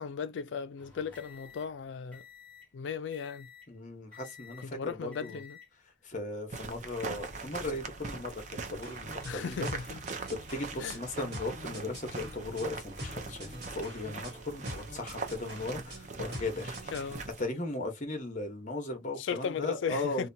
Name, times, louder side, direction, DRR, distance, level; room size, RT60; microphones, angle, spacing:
voice 1, 0.0-2.2 2.7-3.5 4.6-5.6 9.2-10.0 10.8-11.0 16.9-17.2 19.2-20.3, left 6 dB, 70° left, 0.3 m, -36 dB
sound 1, 0.8-2.8 3.1-3.8 4.1-4.8 5.1-5.7 6.5-6.8, left 7 dB, 10° left, 1.0 m, -53 dB
voice 2, 3.7-5.4 6.0-9.7 10.3-17.0 17.4-20.3, left 2 dB, 40° left, 0.9 m, -37 dB
sound 2, 6.5-17.4, right 3 dB, 40° right, 0.5 m, -42 dB
sound 3, 8.8-17.2, equal, 60° right, 1.1 m, -45 dB
2.8 x 2.2 x 2.6 m
head